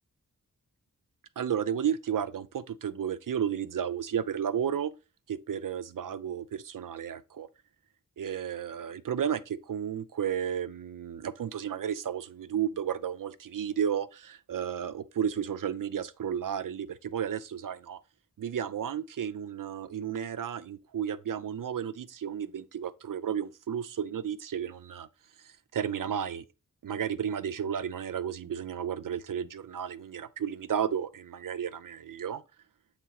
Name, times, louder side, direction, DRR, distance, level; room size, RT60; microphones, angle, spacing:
voice 1, 1.4-4.9 5.3-7.5 8.2-18.0 18.4-25.1 25.4-26.4 26.8-32.4, right 8 dB, 70° right, 0.5 m, -33 dB
6.9 x 3.3 x 4.7 m
wide cardioid pair, 75°, 33 cm